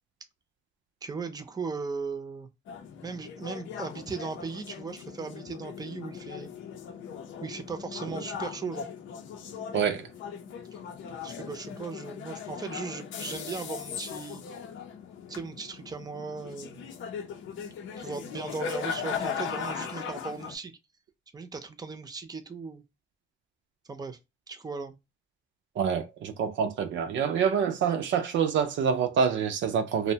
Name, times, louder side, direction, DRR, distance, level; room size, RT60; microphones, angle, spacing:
voice 1, 1.0-2.5 3.0-6.5 7.4-8.9 11.2-14.4 15.3-16.9 18.0-20.7 21.3-22.8 23.9-24.2 24.5-25.0, right 4 dB, 20° right, 0.5 m, -37 dB
sound 1, 2.7-20.6, left 7 dB, 80° left, 0.6 m, -38 dB
voice 2, 9.7-10.1 25.8-30.1, right 7 dB, 70° right, 0.5 m, -26 dB
2.6 x 2.1 x 2.7 m
cardioid pair, 90°, 20 cm